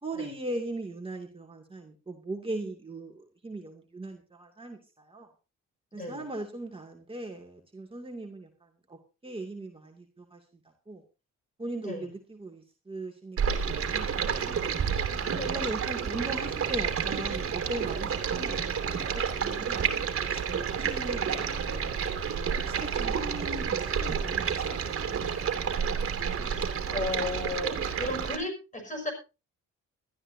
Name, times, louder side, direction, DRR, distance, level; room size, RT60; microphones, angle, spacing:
voice 1, 0.0-5.3 5.9-9.0 9.2-10.4 10.9-11.0 11.6-13.4 13.6-14.7 15.5-18.6 18.8-21.7 22.3-25.6, right 2 dB, 20° right, 1 dB, 2.4 m, -39 dB
voice 2, 5.9-6.3 11.8-12.1 15.4-15.5 26.5-29.1, left 2 dB, 25° left, 5 dB, 6.4 m, -35 dB
Stream, 13.4-28.4, right 7 dB, 45° right, 2.6 m, -30 dB
21.5 x 13.0 x 2.7 m, 0.31 s
cardioid pair, 90°, 30 cm